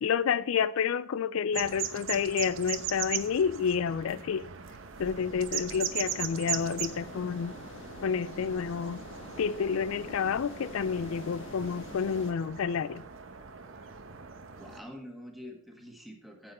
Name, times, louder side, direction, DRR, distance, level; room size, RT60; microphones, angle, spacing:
voice 1, 0.0-4.5 5.0-7.5 8.0-9.0 9.4-13.0, left 6 dB, 85° left, 0.4 m, -29 dB
sound 1, 1.5-14.8, right 8 dB, 70° right, 0.9 m, -39 dB
sound 2, 5.0-12.3, left 1 dB, 65° left, 1.5 m, -46 dB
voice 2, 14.6-16.5, equal, ahead, 1.6 m, -46 dB
8.9 x 7.8 x 4.2 m
head